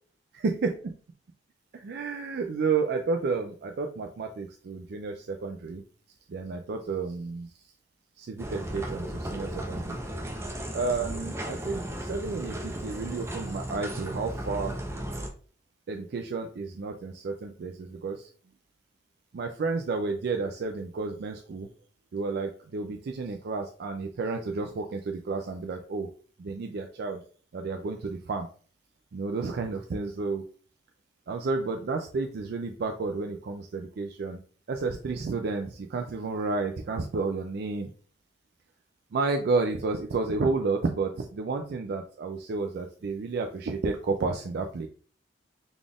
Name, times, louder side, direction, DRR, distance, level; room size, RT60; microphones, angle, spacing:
voice 1, 0.4-0.9 1.7-5.8 6.3-7.5 8.2-10.0 10.7-14.8 15.9-18.3 19.3-21.7 22.1-26.1 26.4-27.2 27.5-28.5 29.1-30.4 31.3-34.4 34.7-37.9 39.1-44.9, right 4 dB, 60° right, 4 dB, 0.4 m, -31 dB
sound 1, 8.4-15.3, right 1 dB, 15° right, 0.6 m, -35 dB
3.9 x 2.4 x 3.4 m, 0.43 s
head